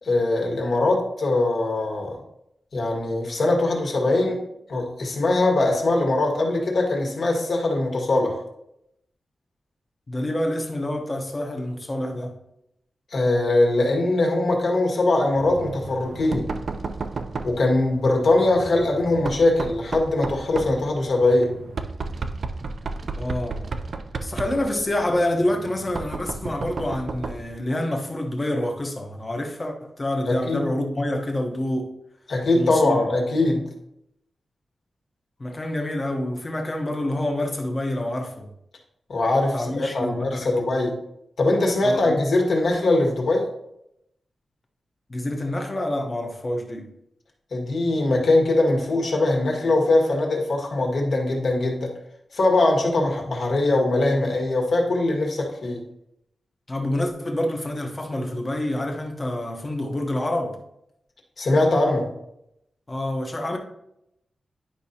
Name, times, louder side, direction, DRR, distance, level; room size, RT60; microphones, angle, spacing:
voice 1, 0.0-2.2 2.7-4.4 4.7-8.4 13.1-16.5 17.4-21.5 30.3-30.6 32.3-33.6 39.1-40.9 41.4-43.5 47.5-51.9 52.3-55.8 61.4-62.1, left 2 dB, 60° left, 1.7 m, -21 dB
voice 2, 10.1-12.4 23.2-23.7 24.2-31.9 32.5-33.2 35.4-38.5 39.5-40.9 41.8-42.2 45.1-46.9 56.7-60.6 62.9-63.6, left 1 dB, 25° left, 1.0 m, -27 dB
Knock, 15.3-27.6, right 3 dB, 50° right, 0.5 m, -33 dB
10.0 x 5.3 x 2.9 m
wide cardioid pair, 155°, 0 cm